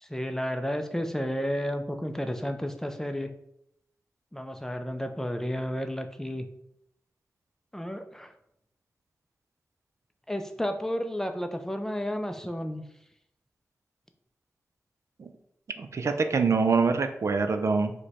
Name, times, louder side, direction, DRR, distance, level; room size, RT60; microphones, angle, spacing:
voice 1, 0.0-3.3 4.3-6.5 7.7-8.3 10.3-12.8, equal, 10° left, 6 dB, 0.4 m, -32 dB
voice 2, 15.8-17.9, right 4 dB, 60° right, 7 dB, 0.4 m, -25 dB
4.8 x 2.2 x 4.1 m, 0.75 s
cardioid pair, 65°, 6 cm